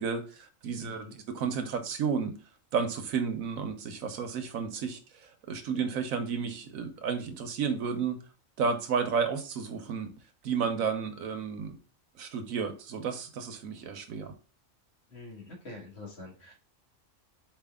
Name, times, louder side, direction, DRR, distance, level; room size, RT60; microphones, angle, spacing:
voice 1, 0.0-2.3 2.7-8.2 8.6-10.1 10.4-11.8 12.2-14.3, right 6 dB, 80° right, 7 dB, 1.2 m, -32 dB
voice 2, 0.8-1.1 15.1-16.5, left 3 dB, 50° left, -2 dB, 1.8 m, -45 dB
4.3 x 3.3 x 3.4 m, 0.35 s
omnidirectional pair, 1.4 m